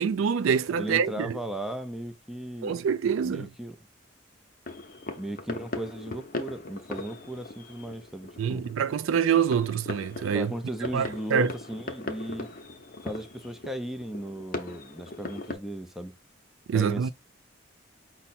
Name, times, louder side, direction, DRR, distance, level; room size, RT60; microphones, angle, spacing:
voice 1, 0.0-1.4 2.6-3.5 8.4-10.5 10.9-11.5 16.7-17.1, right 7 dB, 85° right, 0.4 m, -26 dB
voice 2, 0.7-2.8 3.2-3.8 5.2-8.7 10.3-12.5 13.0-16.1 16.7-17.1, right 1 dB, ahead, 0.4 m, -36 dB
sound 1, 4.7-15.5, left 2 dB, 45° left, 0.7 m, -39 dB
5.4 x 2.1 x 4.1 m
head